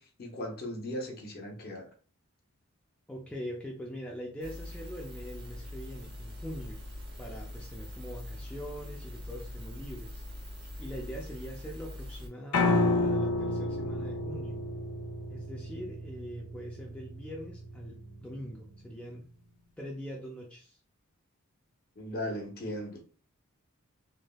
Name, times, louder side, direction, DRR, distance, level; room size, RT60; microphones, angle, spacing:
voice 1, 0.0-1.9 7.2-7.3 22.0-23.0, left 1 dB, 45° left, 2 dB, 0.7 m, -38 dB
voice 2, 3.1-6.8 7.2-10.2 10.8-14.6 15.3-19.2 19.8-20.8, equal, 5° left, -2 dB, 0.3 m, -42 dB
sound 1, 4.4-12.3, left 1 dB, 45° right, 0.8 m, -43 dB
Piano, 12.5-18.7, left 2 dB, 80° left, 0.5 m, -31 dB
3.3 x 2.1 x 2.2 m, 0.39 s
head